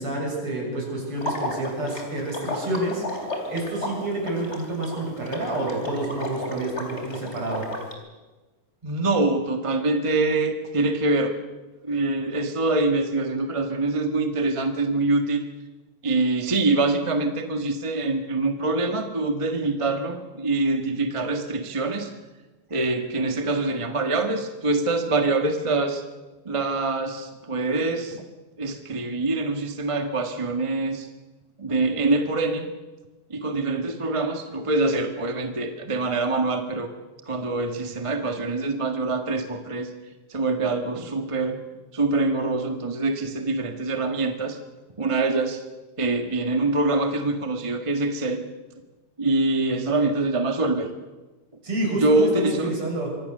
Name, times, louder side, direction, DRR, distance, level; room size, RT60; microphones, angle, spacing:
voice 1, 0.0-7.7 51.6-53.2, right 2 dB, 45° right, -1 dB, 8.3 m, -29 dB
Water / Liquid, 1.2-7.9, left 1 dB, 20° left, 3.9 m, -33 dB
voice 2, 8.8-11.3 11.8-15.4 16.0-22.1 22.7-26.0 26.4-28.2 28.6-31.1 31.6-32.6 33.3-36.9 37.3-39.9 40.3-41.6 41.9-44.6 45.0-45.6 46.0-48.4 49.2-50.9 52.0-52.8, right 2 dB, 20° right, 6 dB, 0.8 m, -24 dB
25.5 x 24.5 x 6.7 m, 1.2 s
omnidirectional pair, 3.4 m